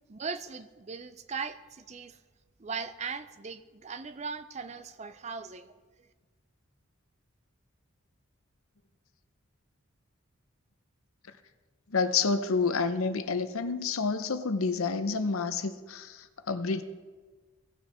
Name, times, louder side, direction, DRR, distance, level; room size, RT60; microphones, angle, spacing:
voice 1, 0.1-2.2 2.6-5.7, right 5 dB, 30° right, 11 dB, 0.4 m, -39 dB
voice 2, 11.9-16.8, left 4 dB, 80° left, 10 dB, 0.7 m, -29 dB
18.0 x 6.2 x 4.3 m, 1.4 s
head